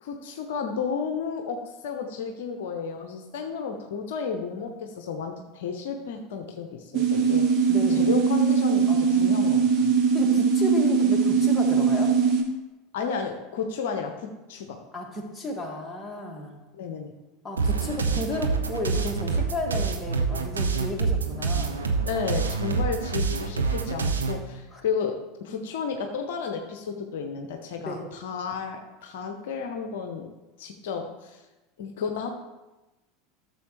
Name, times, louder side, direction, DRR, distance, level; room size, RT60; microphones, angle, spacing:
voice 1, 0.0-9.9 12.9-14.8 16.7-17.1 22.1-25.1 25.4-30.3 30.6-31.4 31.8-32.3, left 6 dB, 60° left, 5 dB, 0.8 m, -32 dB
sound 1, 6.9-12.4, right 6 dB, 45° right, 1.3 m, -21 dB
voice 2, 7.7-8.1 8.9-9.4 10.1-12.1 14.9-16.6 17.4-21.8 24.7-24.8 27.9-28.0, left 1 dB, 10° left, -1 dB, 1.9 m, -33 dB
sound 2, 17.6-24.4, right 4 dB, 75° right, 0.8 m, -26 dB
12.5 x 6.9 x 3.2 m, 1.1 s
figure-of-eight pair, 80°, 0 cm